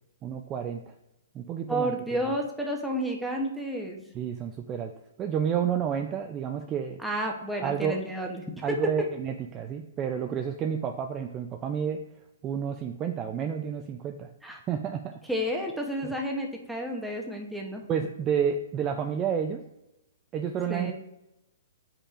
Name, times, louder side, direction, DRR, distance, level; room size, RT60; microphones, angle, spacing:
voice 1, 0.2-0.9 1.3-1.9 4.1-4.9 5.2-7.0 7.6-8.0 8.6-12.0 12.4-14.3 14.7-15.1 16.0-16.1 17.9-19.6 20.3-20.9, right 7 dB, 20° right, 4 dB, 0.3 m, -30 dB
voice 2, 1.7-4.0 7.0-8.8 14.4-14.6 15.3-17.8 20.7-20.9, equal, ahead, 0 dB, 0.8 m, -31 dB
8.3 x 5.4 x 2.5 m, 0.90 s
hypercardioid pair, 155°, 0 cm